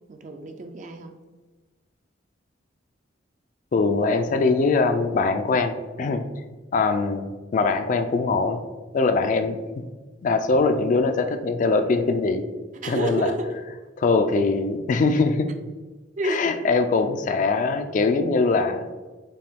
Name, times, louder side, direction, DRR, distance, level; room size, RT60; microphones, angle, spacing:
voice 1, 0.1-1.2 12.8-13.5 15.5-15.6 16.2-16.4, right 2 dB, 40° right, 6 dB, 0.3 m, -29 dB
voice 2, 3.7-6.2 6.7-8.7 8.9-9.6 10.2-12.4 12.8-13.3 14.0-15.5 16.2-18.9, left 3 dB, 40° left, 8 dB, 0.3 m, -22 dB
5.3 x 2.2 x 3.5 m, 1.3 s
head